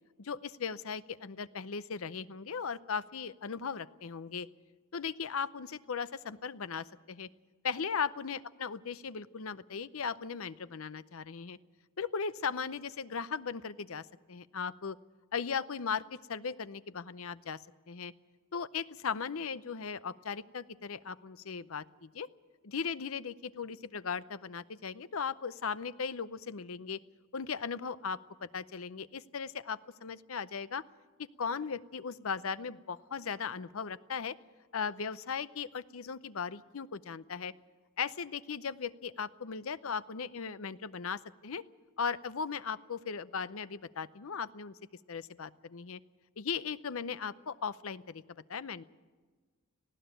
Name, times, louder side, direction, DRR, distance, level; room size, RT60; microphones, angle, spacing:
voice 1, 0.2-4.5 4.9-7.3 7.6-11.6 12.0-15.0 15.3-17.6 17.9-18.1 18.5-22.3 22.6-27.0 27.3-30.8 31.2-34.3 34.7-37.5 38.0-41.6 42.0-44.7 45.1-46.0 46.4-48.2 48.5-48.8, left 6 dB, 70° left, 16 dB, 0.7 m, -37 dB
19.0 x 15.5 x 9.0 m, 1.4 s
head